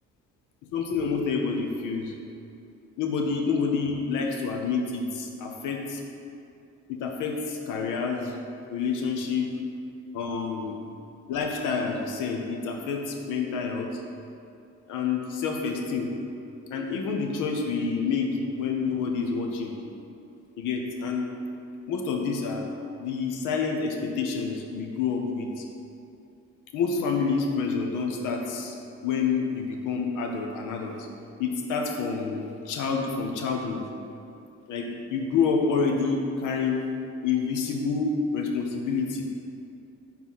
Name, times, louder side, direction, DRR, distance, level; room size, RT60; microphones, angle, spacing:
voice 1, 0.7-2.1 3.0-6.0 6.9-8.3 8.7-9.5 10.1-10.8 11.3-14.0 14.9-16.1 16.7-18.3 18.6-19.7 20.6-21.3 21.9-22.7 23.0-25.6 26.7-28.8 29.0-31.1 31.4-33.8 34.7-36.8 37.2-39.2, left 5 dB, 85° left, 2 dB, 0.8 m, -28 dB
4.6 x 3.8 x 5.5 m, 2.6 s
cardioid pair, 90°, 30 cm